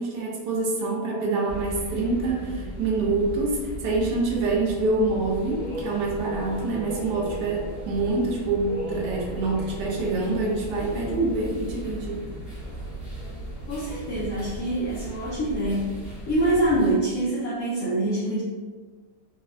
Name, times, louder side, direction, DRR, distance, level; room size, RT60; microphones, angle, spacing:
voice 1, 0.0-12.2, right 3 dB, 80° right, -2 dB, 1.3 m, -26 dB
sound 1, 1.5-16.9, right 1 dB, ahead, 0.3 m, -36 dB
voice 2, 13.7-18.4, right 1 dB, 65° left, -7 dB, 0.9 m, -25 dB
4.3 x 2.2 x 2.2 m, 1.4 s
omnidirectional pair, 1.9 m